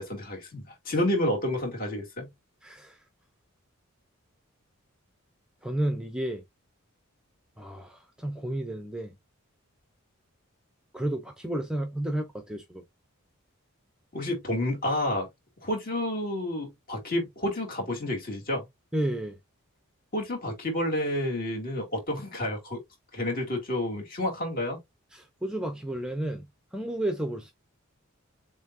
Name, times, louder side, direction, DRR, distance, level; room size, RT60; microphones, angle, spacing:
voice 1, 0.0-2.3 14.1-15.3 15.6-18.7 20.1-22.8 23.1-24.8, left 1 dB, 40° left, 2.4 m, -30 dB
voice 2, 2.6-3.0 5.6-6.4 7.6-9.1 10.9-12.8 18.9-19.4 25.1-26.5 26.7-27.5, right 1 dB, 5° right, 0.6 m, -32 dB
7.1 x 2.8 x 2.6 m
head